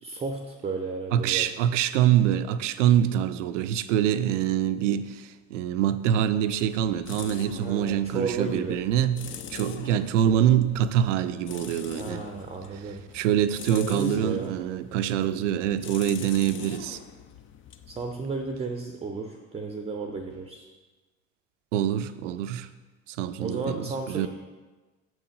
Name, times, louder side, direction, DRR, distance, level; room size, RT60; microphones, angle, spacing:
voice 1, 0.0-1.5 7.6-8.8 12.0-13.0 13.8-14.6 17.9-20.7 23.4-24.3, right 4 dB, 15° right, 0.6 m, -33 dB
voice 2, 1.1-12.2 13.1-17.0 21.7-22.7 23.1-24.3, right 10 dB, 65° right, 0.5 m, -25 dB
sound 1, 6.1-18.8, left 8 dB, 30° left, 0.5 m, -44 dB
7.0 x 6.2 x 5.1 m
figure-of-eight pair, 60°, 40 cm